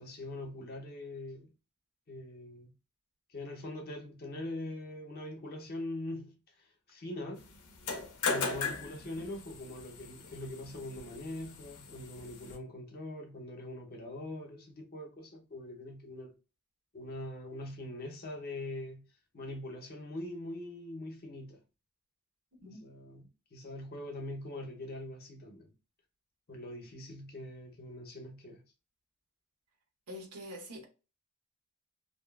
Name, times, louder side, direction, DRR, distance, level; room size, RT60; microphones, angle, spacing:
voice 1, 0.0-1.5 2.1-2.7 3.3-7.5 8.2-16.3 16.9-19.0 19.3-21.6 22.6-25.7 26.5-28.6, left 1 dB, 45° left, 0.7 m, -43 dB
sound 1, 7.7-12.5, left 4 dB, 85° left, 0.6 m, -38 dB
voice 2, 30.1-30.9, equal, 90° right, 0.9 m, -45 dB
2.6 x 2.3 x 2.2 m
head